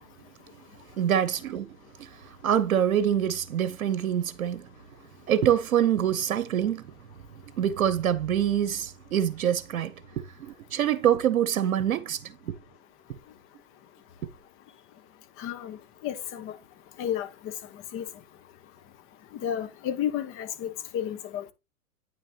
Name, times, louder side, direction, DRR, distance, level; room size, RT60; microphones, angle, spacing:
voice 1, 1.0-2.1 2.4-4.7 5.3-6.8 7.6-12.5, right 10 dB, 85° right, 0.8 m, -25 dB
voice 2, 15.4-15.8 16.0-16.5 17.0-17.3 17.9-18.1 19.4-21.5, left 10 dB, 30° left, 1.1 m, -31 dB
9.3 x 6.2 x 2.8 m
hypercardioid pair, 125°, 41 cm